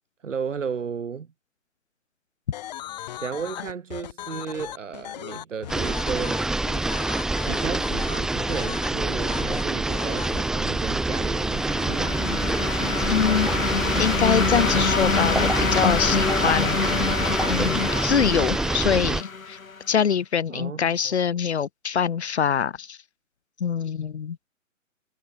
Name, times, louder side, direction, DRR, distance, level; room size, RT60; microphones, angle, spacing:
voice 1, 0.2-1.3 3.2-6.6 7.5-12.2 20.5-21.2, right 6 dB, 65° right, 2.6 m, -33 dB
sound 1, 2.5-10.4, left 13 dB, 30° left, 2.8 m, -37 dB
sound 2, 5.7-19.2, right 2 dB, ahead, 1.0 m, -26 dB
sound 3, 11.2-19.8, left 5 dB, 80° left, 3.0 m, -26 dB
voice 2, 13.1-13.5 14.0-16.9 17.5-19.6 19.9-23.0 23.6-24.4, left 7 dB, 55° left, 3.1 m, -24 dB
hypercardioid pair, 155°, 40 cm